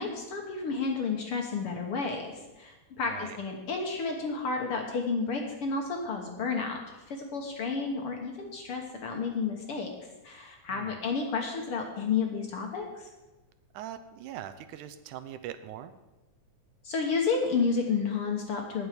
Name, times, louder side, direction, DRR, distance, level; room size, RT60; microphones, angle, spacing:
voice 1, 0.0-9.9 10.2-13.1 16.8-18.9, left 5 dB, 60° left, 2 dB, 1.7 m, -31 dB
voice 2, 3.1-3.4 10.7-11.0 13.7-15.9, right 11 dB, 80° right, 10 dB, 2.1 m, -41 dB
19.0 x 6.3 x 5.1 m, 1.1 s
omnidirectional pair, 3.6 m